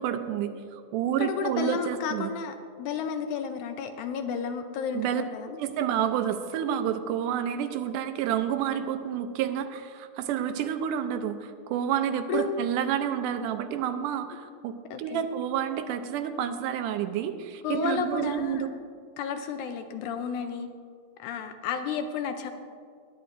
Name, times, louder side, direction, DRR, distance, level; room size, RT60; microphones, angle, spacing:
voice 1, 0.0-2.3 4.9-5.2 5.6-18.7, right 9 dB, 85° right, 9 dB, 2.1 m, -29 dB
voice 2, 1.2-5.6 12.3-12.5 14.9-15.2 17.6-18.8 19.2-20.7 21.2-22.5, left 6 dB, 75° left, 7 dB, 1.9 m, -32 dB
19.5 x 10.0 x 2.5 m, 2.2 s
omnidirectional pair, 3.7 m